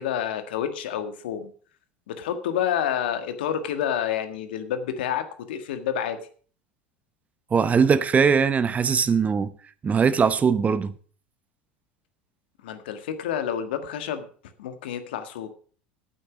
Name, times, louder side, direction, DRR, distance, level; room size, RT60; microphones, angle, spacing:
voice 1, 0.0-1.5 2.1-6.2 12.6-14.3 14.6-15.5, left 9 dB, 75° left, 1.5 m, -29 dB
voice 2, 7.5-9.5 9.8-10.9, right 6 dB, 25° right, 0.8 m, -20 dB
8.8 x 8.8 x 6.0 m
hypercardioid pair, 80°, 5 cm